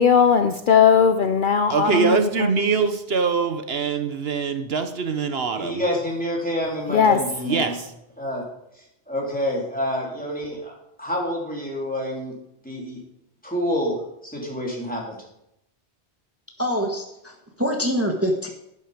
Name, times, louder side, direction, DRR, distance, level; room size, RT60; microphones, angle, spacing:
voice 1, 0.0-2.5 6.9-7.2, left 7 dB, 55° left, 9 dB, 0.7 m, -18 dB
voice 2, 1.7-5.8 7.4-7.9, right 5 dB, 65° right, 7 dB, 1.2 m, -23 dB
voice 3, 5.6-7.8 8.2-8.4 9.1-10.7 11.0-12.3 12.6-13.0 13.4-14.0 14.2-15.2, equal, 10° left, -2 dB, 3.6 m, -27 dB
voice 4, 16.6-18.5, equal, 15° right, 2 dB, 1.4 m, -25 dB
11.5 x 11.0 x 5.0 m, 0.82 s
omnidirectional pair, 1.1 m